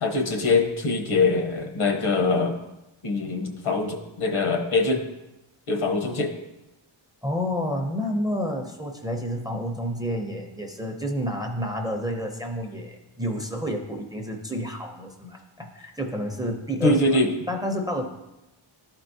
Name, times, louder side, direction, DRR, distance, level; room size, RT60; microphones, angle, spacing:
voice 1, 0.0-2.6 3.0-5.0 5.7-6.3 16.8-17.3, left 3 dB, 75° left, 3 dB, 1.1 m, -23 dB
voice 2, 7.2-17.2 17.5-18.1, equal, 10° right, 3 dB, 0.5 m, -30 dB
12.0 x 4.5 x 2.7 m, 0.96 s
wide cardioid pair, 155°, 50 cm